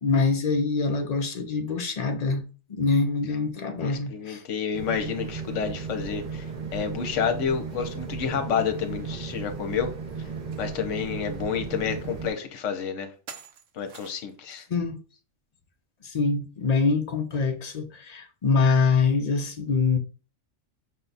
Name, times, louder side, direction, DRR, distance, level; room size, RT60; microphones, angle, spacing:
voice 1, 0.0-2.4 2.7-4.4 14.7-15.0 16.0-20.0, left 4 dB, 45° left, 0.6 m, -24 dB
voice 2, 3.7-6.5 6.7-9.9 10.6-13.1 13.7-14.7, left 7 dB, 75° left, 1.1 m, -29 dB
sound 1, 4.7-12.3, right 5 dB, 40° right, 0.8 m, -35 dB
sound 2, 10.5-10.7 11.2-11.3 12.2-12.3 13.3-14.4, right 6 dB, 75° right, 1.1 m, -45 dB
5.6 x 2.3 x 3.9 m
omnidirectional pair, 1.3 m